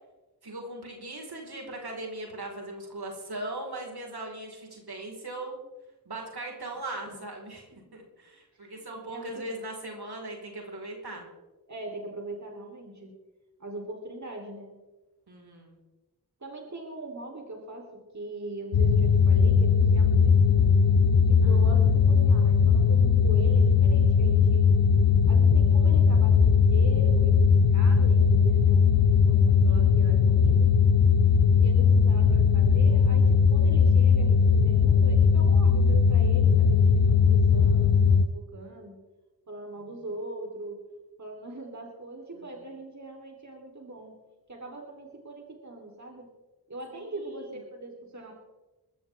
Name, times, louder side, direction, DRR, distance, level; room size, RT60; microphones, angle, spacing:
voice 1, 0.4-5.6 6.0-11.3 15.3-15.8 21.4-22.0 27.7-27.9 31.5-31.7 39.8-39.9 42.3-42.5 46.9-47.6, right 2 dB, 65° right, 1 dB, 4.8 m, -39 dB
voice 2, 8.8-9.6 11.7-13.1 13.6-14.7 16.4-20.8 21.2-24.7 25.3-27.5 27.7-30.7 31.6-39.0 39.5-40.8 41.2-44.2 44.5-46.3 46.7-48.3, right 2 dB, 45° right, 1 dB, 3.8 m, -41 dB
sound 1, 18.7-38.2, left 6 dB, 85° left, 0.9 m, -19 dB
22.5 x 13.5 x 3.7 m, 1.1 s
cardioid pair, 45°, 41 cm